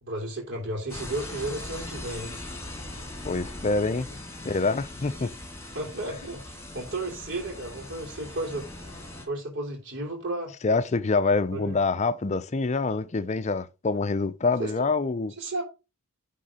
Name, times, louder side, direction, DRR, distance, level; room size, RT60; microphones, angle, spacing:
voice 1, 0.0-2.4 5.7-8.9 9.3-10.5 11.5-11.7 14.6-14.7 15.4-15.6, right 2 dB, 55° right, 3.1 m, -33 dB
sound 1, 0.9-9.3, left 1 dB, 10° left, 1.9 m, -40 dB
voice 2, 3.2-4.1 4.4-5.3 10.6-15.3, left 3 dB, 30° left, 0.5 m, -26 dB
9.9 x 3.7 x 5.0 m
head